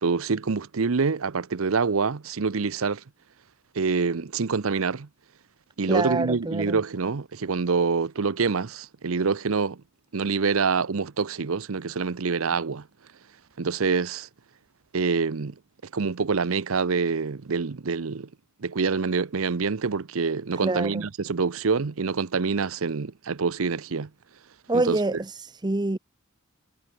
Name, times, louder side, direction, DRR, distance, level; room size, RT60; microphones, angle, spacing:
voice 1, 0.0-3.0 3.8-5.1 5.8-9.8 10.1-12.8 13.6-14.3 14.9-15.5 15.9-18.3 18.6-24.1 24.7-25.0, right 5 dB, 75° right, 0.7 m, -26 dB
voice 2, 5.9-6.8 20.6-21.1 24.7-26.0, right 2 dB, 20° right, 0.7 m, -26 dB
head